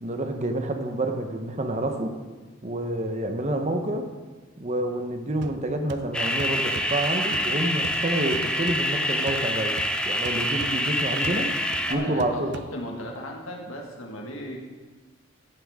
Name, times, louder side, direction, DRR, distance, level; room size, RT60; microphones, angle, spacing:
voice 1, 0.0-2.1 2.6-4.1 4.6-11.5 11.9-12.5, right 1 dB, 35° right, 5 dB, 0.9 m, -28 dB
sound 1, 5.4-13.1, right 4 dB, 60° right, 0.5 m, -43 dB
sound 2, 6.1-11.9, equal, 5° left, 0.5 m, -26 dB
voice 2, 11.9-14.6, left 1 dB, 85° left, 1 dB, 1.8 m, -36 dB
15.0 x 7.5 x 3.7 m, 1.4 s
head